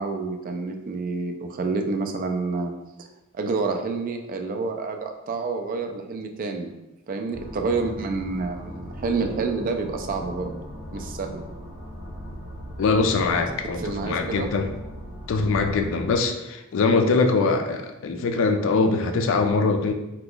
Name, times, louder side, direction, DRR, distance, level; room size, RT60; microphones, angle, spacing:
voice 1, 0.0-2.7 3.0-3.1 3.3-6.7 7.1-10.6 10.9-11.4 13.7-14.5, right 4 dB, 40° right, 5 dB, 0.3 m, -28 dB
sound 1, 7.3-16.2, equal, 15° right, 1.0 m, -38 dB
voice 2, 12.8-14.7 15.3-19.9, left 4 dB, 60° left, 6 dB, 0.4 m, -22 dB
2.9 x 2.3 x 3.7 m, 0.98 s
head